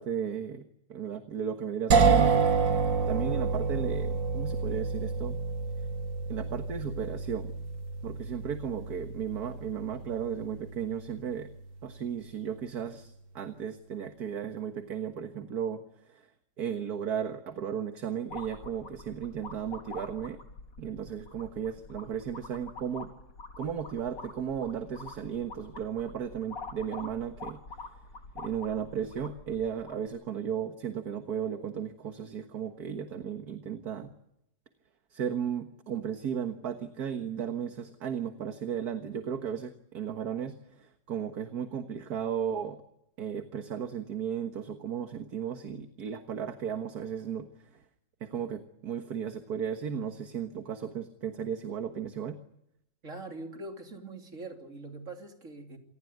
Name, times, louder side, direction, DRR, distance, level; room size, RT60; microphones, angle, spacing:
voice 1, 0.0-2.5 3.1-5.4 6.3-7.5 8.0-11.5 11.8-16.3 16.6-20.4 20.8-23.1 23.6-27.6 28.4-34.1 35.1-42.8 43.2-47.8 48.2-52.4, right 8 dB, 60° right, 7 dB, 1.9 m, -35 dB
sound 1, 1.9-11.7, right 5 dB, 90° right, 2.5 m, -28 dB
sound 2, 18.3-30.1, left 3 dB, 75° left, 4.0 m, -46 dB
voice 2, 53.0-55.8, right 2 dB, 45° right, 4 dB, 3.5 m, -43 dB
27.5 x 19.0 x 9.4 m, 0.82 s
omnidirectional pair, 1.9 m